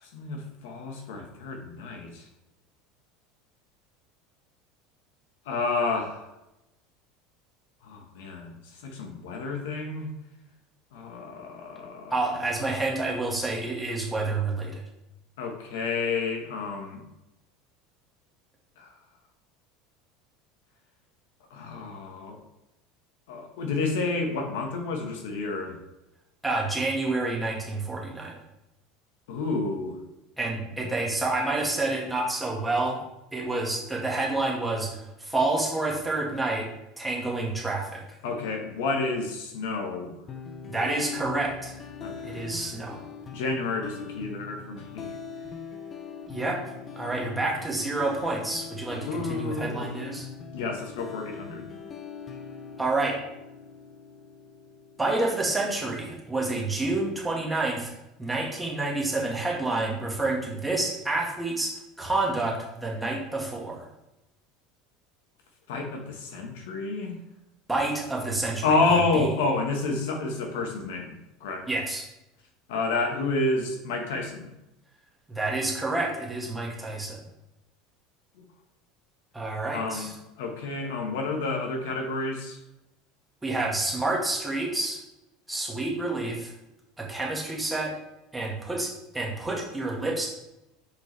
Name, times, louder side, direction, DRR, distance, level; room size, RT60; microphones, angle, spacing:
voice 1, 0.0-2.2 5.4-6.3 7.8-10.1 10.9-12.3 15.4-17.0 18.8-18.9 21.5-22.4 23.3-25.8 29.3-30.0 38.2-40.1 42.0-42.4 43.3-45.1 49.0-49.9 50.5-51.7 65.7-67.1 68.6-71.7 72.7-74.5 79.7-80.1 80.4-82.6, left 3 dB, 85° left, 3 dB, 1.4 m, -30 dB
voice 2, 12.1-14.8 26.4-28.4 30.4-33.0 33.3-36.7 37.0-38.0 40.7-41.8 42.2-43.0 46.3-46.6 46.9-50.3 52.8-53.2 55.0-57.9 58.2-63.8 67.7-68.7 71.7-72.0 75.3-77.2 79.3-80.1 83.4-85.0 85.5-86.5 87.0-88.0 88.3-90.3, right 2 dB, 10° right, -3 dB, 1.8 m, -28 dB
sound 1, 40.3-55.3, left 6 dB, 30° left, 0.7 m, -41 dB
6.8 x 5.0 x 3.4 m, 0.92 s
supercardioid pair, 130°, 0 cm